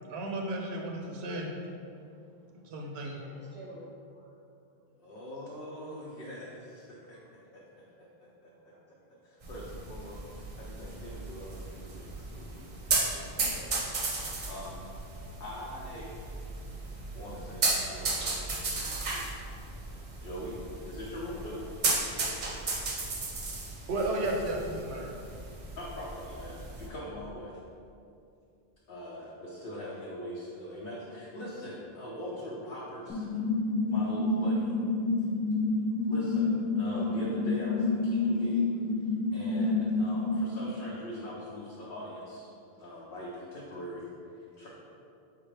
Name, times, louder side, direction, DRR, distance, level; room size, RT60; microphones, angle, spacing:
voice 1, 0.1-1.5 2.6-3.3 23.9-25.2, right 1 dB, 85° right, 1 dB, 0.8 m, -33 dB
voice 2, 3.1-3.8 4.1-4.3 4.7-5.0 5.4-5.5 8.5-9.1, right 1 dB, 10° right, -7 dB, 0.8 m, -53 dB
voice 3, 5.0-7.2 7.5-8.7 9.2-14.8 15.4-16.4 17.1-19.3 20.2-20.6 20.9-21.7 25.8-27.6 28.9-33.4 33.9-34.7 36.1-38.6 39.3-42.5 42.8-44.7, equal, 65° left, -5 dB, 0.8 m, -42 dB
sound 1, 9.4-26.9, right 3 dB, 50° right, 0.7 m, -35 dB
sound 2, 33.1-40.4, left 3 dB, 10° left, 0.3 m, -28 dB
4.5 x 3.6 x 3.2 m, 2.5 s
omnidirectional pair, 1.0 m